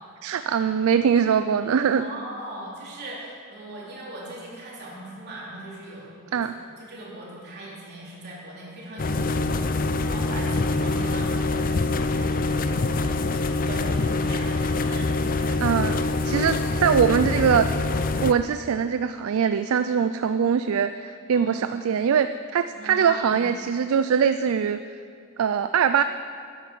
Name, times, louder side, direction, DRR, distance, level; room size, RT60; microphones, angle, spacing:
voice 1, 0.2-2.1 6.3-6.6 15.6-17.7 18.2-22.3 22.5-24.8 25.4-26.0, right 7 dB, 70° right, 10 dB, 0.4 m, -22 dB
voice 2, 1.9-15.1 21.3-21.7 22.8-23.5, right 1 dB, 50° right, -6 dB, 3.6 m, -40 dB
sound 1, 9.0-18.3, left 3 dB, 40° left, 0.5 m, -25 dB
13.0 x 10.5 x 5.4 m, 2.3 s
head